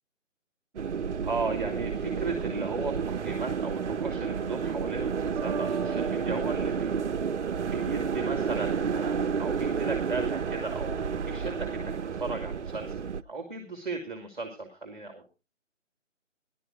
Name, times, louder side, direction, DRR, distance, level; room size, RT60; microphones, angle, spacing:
sound 1, 0.8-13.2, right 6 dB, 65° right, 0.6 m, -31 dB
voice 1, 1.2-15.2, right 3 dB, ahead, 3 dB, 1.8 m, -36 dB
Bass guitar, 5.4-8.9, right 4 dB, 30° right, 1.0 m, -41 dB
15.0 x 12.0 x 3.7 m, 0.30 s
figure-of-eight pair, 165°, 38 cm